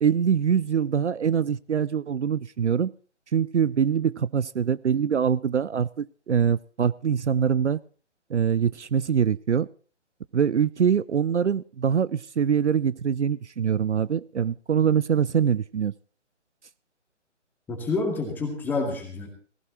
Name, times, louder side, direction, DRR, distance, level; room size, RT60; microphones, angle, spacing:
voice 1, 0.0-2.9 3.3-7.8 8.3-9.7 10.3-15.9, right 7 dB, 70° right, 20 dB, 0.6 m, -24 dB
voice 2, 17.7-19.3, left 3 dB, 5° left, 2 dB, 2.1 m, -28 dB
18.5 x 16.5 x 3.0 m, 0.41 s
figure-of-eight pair, 145°, 36 cm